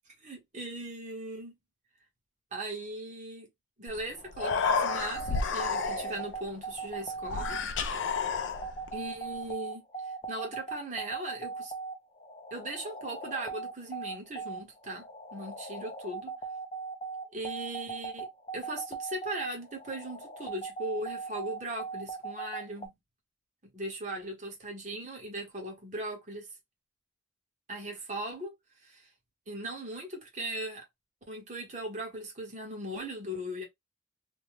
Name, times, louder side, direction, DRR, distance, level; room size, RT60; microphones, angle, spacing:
voice 1, 0.2-1.6 2.5-3.5 3.8-7.6 8.9-9.8 10.3-11.7 12.5-15.0 15.3-16.3 17.3-18.3 18.5-23.0 23.6-26.5 27.7-28.5 28.8-29.1 29.5-30.8 31.3-33.6, right 1 dB, 40° right, 1.1 m, -38 dB
Human voice, 3.9-4.0 4.3-6.3 7.2-8.9, left 5 dB, 75° left, 0.4 m, -31 dB
sound 1, 4.9-22.9, right 4 dB, 30° left, 0.6 m, -39 dB
2.8 x 2.2 x 3.2 m
head